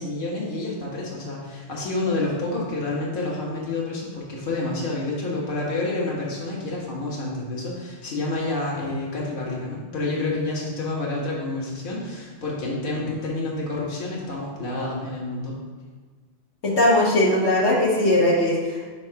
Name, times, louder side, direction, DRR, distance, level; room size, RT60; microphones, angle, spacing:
voice 1, 0.0-15.6, left 2 dB, 50° left, -4 dB, 1.4 m, -28 dB
voice 2, 16.6-18.9, left 1 dB, 75° left, -5 dB, 1.4 m, -19 dB
4.9 x 3.8 x 5.6 m, 1.4 s
omnidirectional pair, 1.2 m